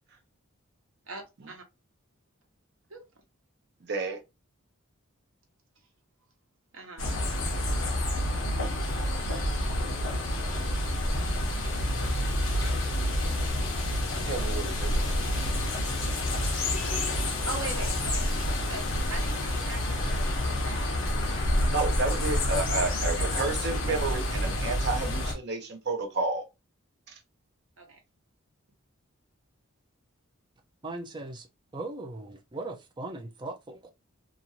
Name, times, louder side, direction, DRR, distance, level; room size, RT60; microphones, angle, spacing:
voice 1, 1.1-1.6 2.9-3.0 6.7-7.3 9.2-9.3 11.6-11.7 17.3-18.3 18.6-20.9 22.8-22.9 27.8-28.0, right 3 dB, 65° right, 1.0 m, -41 dB
voice 2, 3.8-4.2 14.3-15.4 16.5-16.7 20.8-21.0 21.3-21.4 21.7-26.4 27.1-27.2, right 3 dB, 50° right, 0.8 m, -32 dB
sound 1, 7.0-25.3, left 1 dB, 60° left, 1.0 m, -28 dB
voice 3, 30.8-31.5 31.7-33.9, right 2 dB, 20° right, 0.4 m, -38 dB
2.9 x 2.6 x 2.5 m
head